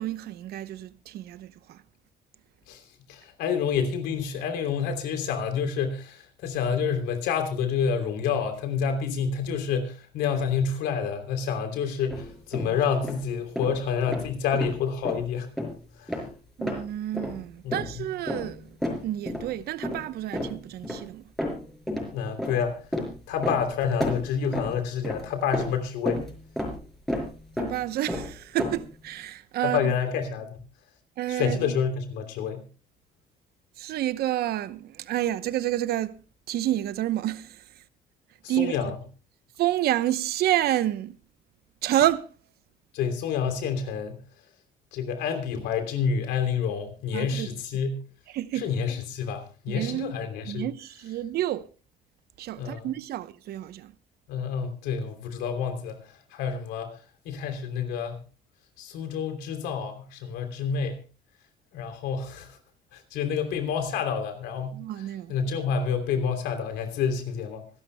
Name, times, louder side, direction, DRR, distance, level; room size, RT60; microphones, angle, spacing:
voice 1, 0.0-1.8 16.6-21.3 27.6-29.9 31.2-31.8 33.8-37.8 38.5-38.9 39.6-41.2 41.8-42.4 47.1-47.5 48.3-48.9 49.7-50.2 50.5-51.7 52.4-53.9 64.7-65.4, right 13 dB, 70° right, 0.8 m, -29 dB
voice 2, 3.1-15.5 16.0-16.2 17.6-18.1 22.1-22.8 23.3-26.2 29.6-30.6 31.3-32.6 38.4-38.9 42.9-44.2 44.9-48.0 48.5-50.7 52.6-52.9 54.3-58.2 58.8-61.0 61.7-62.6 62.9-64.8 65.3-67.6, left 6 dB, 90° left, 3.0 m, -28 dB
sound 1, 12.1-12.7 13.0-13.2 13.6-13.8 14.1-14.8 15.0-15.2 15.6-15.7 16.1-16.3 16.6-16.8 17.1-17.4 17.7-18.0 18.3-19.5 19.8-20.1 20.3-21.1 21.4-22.1 22.4-23.7 24.0-25.3 25.5-26.8 27.1-27.3 27.6-27.8 28.1-28.9, left 1 dB, ahead, 5.3 m, -31 dB
25.5 x 11.5 x 2.2 m
cardioid pair, 110°, 17 cm